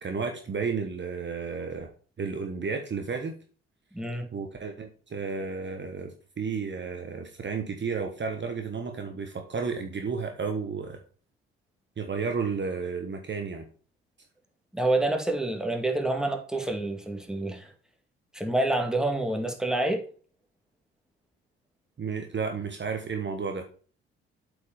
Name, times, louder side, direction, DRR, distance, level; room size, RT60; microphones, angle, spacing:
voice 1, 0.0-1.9 2.2-3.3 4.3-11.0 12.0-13.6 22.0-23.6, right 5 dB, 35° right, 5 dB, 1.3 m, -32 dB
voice 2, 3.9-4.3 14.7-17.7 18.3-20.0, right 2 dB, ahead, 3 dB, 2.0 m, -27 dB
8.0 x 5.1 x 5.0 m, 0.41 s
hypercardioid pair, 45°, 32 cm